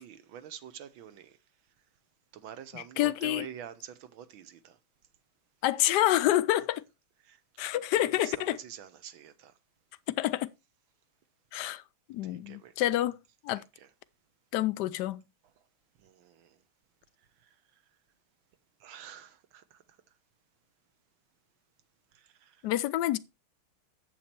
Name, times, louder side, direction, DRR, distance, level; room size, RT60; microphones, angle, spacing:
voice 1, 0.0-1.4 2.3-4.8 6.6-6.7 7.2-7.4 7.9-9.5 12.2-12.9 13.5-13.9 16.0-16.6 17.4-17.6 18.8-19.8 22.1-22.7, right 9 dB, 70° right, 1.7 m, -47 dB
voice 2, 2.7-3.4 5.6-6.8 7.6-8.6 10.1-10.5 11.5-11.8 12.1-13.2 13.4-13.6 14.5-15.2 22.6-23.2, left 14 dB, 70° left, 1.0 m, -28 dB
8.5 x 7.9 x 4.4 m
omnidirectional pair, 2.4 m